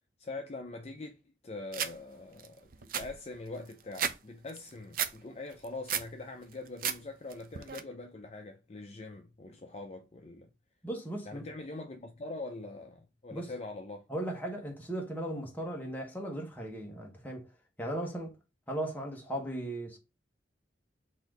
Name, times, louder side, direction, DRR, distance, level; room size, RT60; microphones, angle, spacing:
voice 1, 0.2-1.2 1.4-10.5 11.3-14.1, left 2 dB, 35° left, 0.5 m, -43 dB
sound 1, 1.7-1.9 2.4-2.5 2.7-4.2 4.5-5.1 5.5-6.1 6.5-7.0 7.3-7.8, right 8 dB, 50° right, 0.5 m, -33 dB
voice 2, 10.8-11.5 13.3-13.5 14.1-17.5 17.8-18.4 18.7-20.0, right 1 dB, 10° left, 1.0 m, -37 dB
4.1 x 2.7 x 4.7 m
head